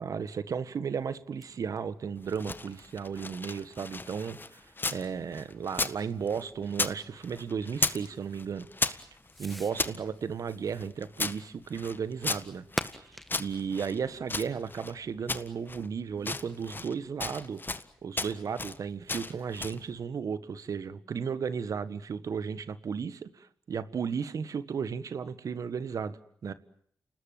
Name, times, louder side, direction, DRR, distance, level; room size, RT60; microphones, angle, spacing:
voice 1, 0.0-9.1 9.4-12.7 12.9-13.1 13.4-17.6 18.0-26.5, right 6 dB, 70° right, 14 dB, 1.6 m, -34 dB
Fireworks, 0.7-15.3, equal, ahead, 1.8 m, -48 dB
sound 1, 2.2-5.1 5.3-7.0 7.2-8.1 8.3-10.0 10.5-13.0 13.3-14.9 15.3-15.9 16.2-16.9 17.2-17.9 18.2-18.8 19.1-19.8, left 3 dB, 35° left, 1.6 m, -34 dB
29.0 x 19.5 x 9.2 m, 0.64 s
cardioid pair, 50°, 6 cm